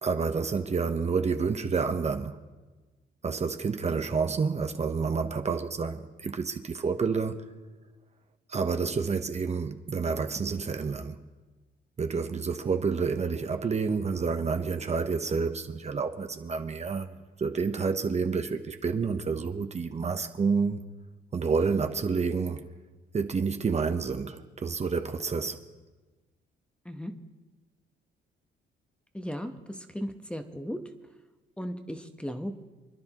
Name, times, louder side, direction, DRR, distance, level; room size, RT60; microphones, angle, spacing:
voice 1, 0.0-2.4 3.2-7.4 8.5-11.2 12.0-20.8 21.3-22.7 23.1-25.6, right 5 dB, 35° right, 0.9 m, -29 dB
voice 2, 29.1-29.5 29.9-30.8 31.6-32.5, equal, 5° left, 1.0 m, -35 dB
28.5 x 10.5 x 3.0 m
cardioid pair, 90°, 20 cm